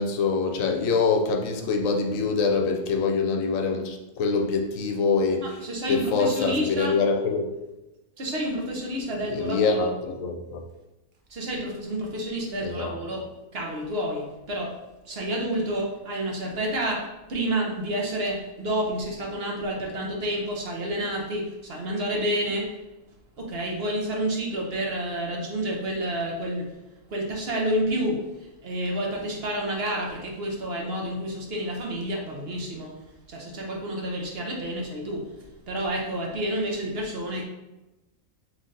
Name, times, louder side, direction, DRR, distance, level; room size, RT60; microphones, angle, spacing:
voice 1, 0.0-5.6 5.9-7.5 9.3-10.6 12.6-12.9, left 4 dB, 80° left, 4 dB, 1.0 m, -25 dB
voice 2, 5.4-7.0 8.2-9.9 11.3-13.2 13.5-14.7 15.1-17.0 17.3-22.7 23.4-26.7 27.1-32.9 33.3-35.2 35.7-37.4, right 1 dB, 55° right, -1 dB, 0.9 m, -29 dB
3.9 x 3.2 x 3.8 m, 1.0 s
omnidirectional pair, 1.4 m